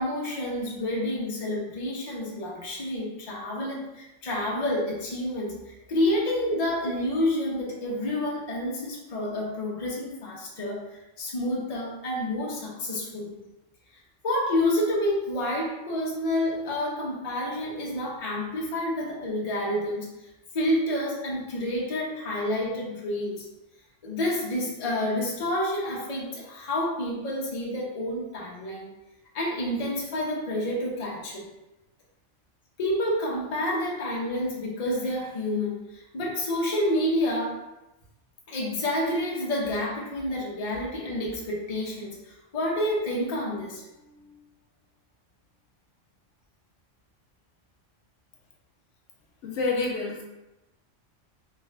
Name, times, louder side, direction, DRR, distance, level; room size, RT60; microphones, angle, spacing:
voice 1, 0.0-13.4 14.2-20.1 20.5-23.5 24.0-28.9 29.3-31.4 32.8-37.5 38.5-44.3, left 1 dB, 35° left, -3 dB, 0.7 m, -29 dB
voice 2, 49.4-50.2, left 3 dB, 75° left, -1 dB, 0.9 m, -28 dB
3.5 x 2.5 x 3.2 m, 0.98 s
omnidirectional pair, 1.3 m